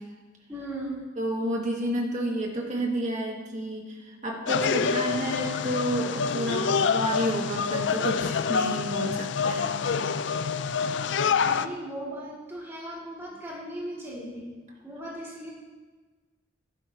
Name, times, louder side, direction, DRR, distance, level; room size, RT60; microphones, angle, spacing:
voice 1, 0.5-1.0 11.4-14.5 14.8-15.5, right 1 dB, 15° right, -6 dB, 2.4 m, -37 dB
voice 2, 1.2-9.7, right 1 dB, 40° right, -1 dB, 2.0 m, -30 dB
sound 1, 4.5-11.7, left 6 dB, 65° left, 0.4 m, -27 dB
14.5 x 11.5 x 2.9 m, 1.3 s
head